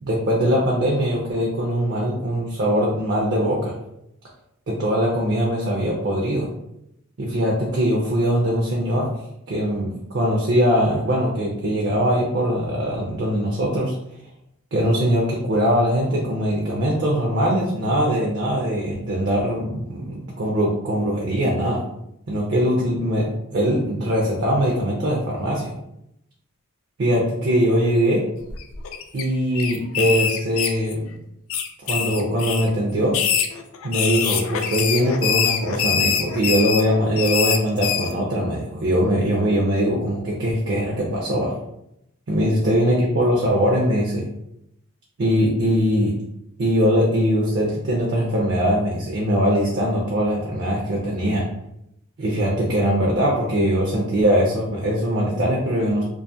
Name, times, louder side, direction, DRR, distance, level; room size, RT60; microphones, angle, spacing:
voice 1, 0.0-3.8 4.7-6.5 7.2-9.1 9.5-13.9 14.7-21.8 22.3-25.7 27.0-28.2 29.1-31.0 31.8-33.2 33.8-41.5 42.3-44.3 45.2-46.1 46.6-51.5 52.2-56.0, equal, 50° right, -3 dB, 0.5 m, -21 dB
sound 1, 28.5-29.2 29.5-31.1 31.5-32.7 33.1-38.1, left 7 dB, 65° left, 0.3 m, -24 dB
2.5 x 2.3 x 2.6 m, 0.80 s
head